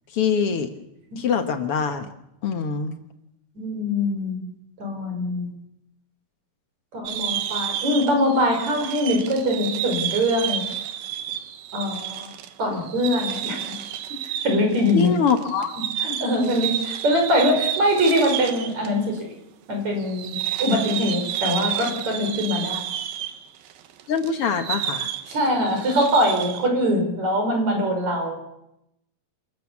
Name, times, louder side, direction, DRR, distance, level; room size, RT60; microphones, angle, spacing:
voice 1, 0.1-0.7 1.2-2.1 2.4-2.9 14.9-15.8 24.1-25.1, left 6 dB, 55° left, 7 dB, 1.7 m, -23 dB
voice 2, 3.6-4.4 4.8-5.5 6.9-10.7 11.7-12.3 12.6-13.8 14.4-15.1 16.0-19.2 19.7-22.8 25.3-28.4, equal, 50° right, 2 dB, 6.7 m, -23 dB
sound 1, 7.1-18.9 19.2-19.3 20.0-26.7, right 10 dB, 85° right, 3.0 m, -31 dB
27.5 x 13.5 x 7.3 m, 0.84 s
omnidirectional pair, 4.0 m